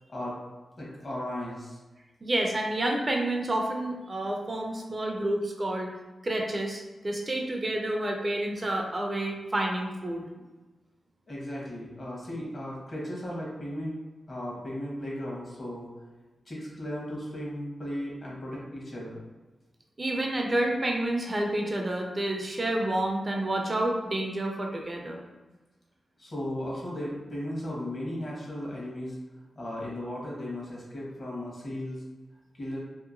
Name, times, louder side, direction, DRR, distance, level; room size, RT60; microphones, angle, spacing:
voice 1, 0.8-1.8 11.3-14.0 14.3-15.9 16.5-19.2 26.2-29.2 29.5-32.0 32.5-32.8, left 1 dB, 50° left, -4 dB, 1.1 m, -36 dB
voice 2, 2.2-5.9 6.2-10.2 20.0-25.2, right 1 dB, 35° right, 1 dB, 0.5 m, -29 dB
2.8 x 2.2 x 2.5 m, 1.2 s
cardioid pair, 65°, 0 cm